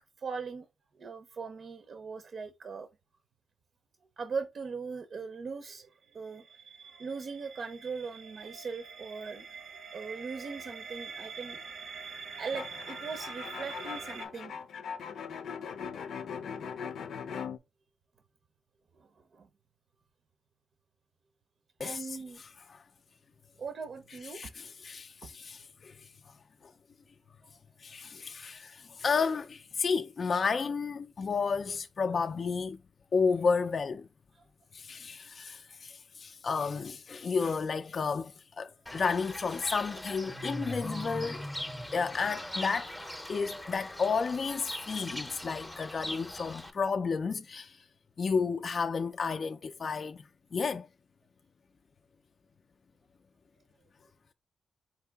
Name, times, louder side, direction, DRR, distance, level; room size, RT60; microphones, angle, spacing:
voice 1, 0.2-0.7 1.0-2.9 4.2-5.9 6.1-6.5 6.9-9.5 9.9-11.6 12.4-14.5 19.0-19.5 21.8-22.4 23.6-24.4 25.2-25.3 34.3-34.4, right 5 dB, 55° right, 0.6 m, -40 dB
sound 1, 6.1-14.3, right 5 dB, 80° right, 0.8 m, -45 dB
sound 2, 12.5-17.6, left 6 dB, 90° left, 0.6 m, -40 dB
voice 2, 21.8-22.8 24.2-26.0 27.8-32.8 33.1-34.1 34.7-41.5 41.9-42.9 43.3-47.8 48.2-50.2 50.5-50.9, left 5 dB, 45° left, 0.3 m, -32 dB
Fowl / Bird, 38.9-46.7, left 1 dB, 5° left, 0.6 m, -40 dB
4.6 x 2.8 x 3.4 m
wide cardioid pair, 130°, 0 cm